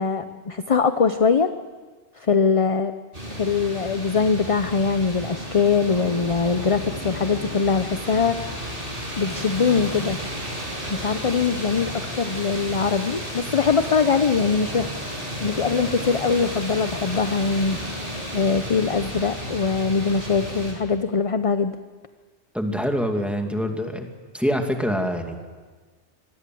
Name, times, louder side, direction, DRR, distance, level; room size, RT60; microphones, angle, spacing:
voice 1, 0.0-1.5 2.2-2.9 3.3-8.6 9.2-10.2 10.9-14.9 15.4-17.8 18.3-21.8, left 5 dB, 35° left, 9 dB, 0.7 m, -22 dB
sound 1, 3.1-20.7, equal, 50° right, 6.4 m, -33 dB
voice 2, 22.5-24.1 24.3-25.4, equal, ahead, 3 dB, 2.2 m, -25 dB
25.5 x 19.5 x 7.7 m, 1.4 s
omnidirectional pair, 1.2 m